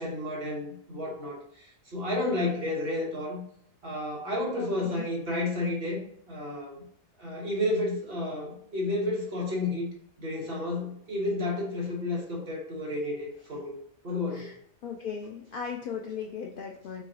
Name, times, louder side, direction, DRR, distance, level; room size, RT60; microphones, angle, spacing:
voice 1, 0.0-3.4 3.8-6.0 6.3-6.8 7.2-9.9 10.2-13.8 14.0-14.5, left 2 dB, 40° right, -3 dB, 1.4 m, -31 dB
voice 2, 4.6-5.1 14.3-14.5 14.8-17.0, left 6 dB, 80° left, 0 dB, 0.4 m, -37 dB
5.7 x 3.0 x 2.8 m, 0.68 s
omnidirectional pair, 1.5 m